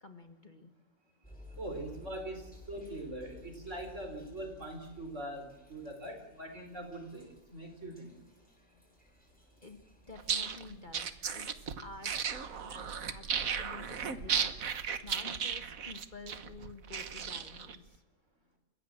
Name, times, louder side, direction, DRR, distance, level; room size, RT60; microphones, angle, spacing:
voice 1, 0.0-0.8 9.6-18.0, left 3 dB, 35° left, 6 dB, 1.7 m, -51 dB
sound 1, 1.2-13.3, left 3 dB, 5° left, 7.3 m, -56 dB
voice 2, 1.6-8.2, right 1 dB, 55° right, 5 dB, 4.8 m, -42 dB
sound 2, 10.2-17.8, right 7 dB, 70° right, 1.6 m, -35 dB
30.0 x 16.0 x 7.6 m, 1.0 s
omnidirectional pair, 1.5 m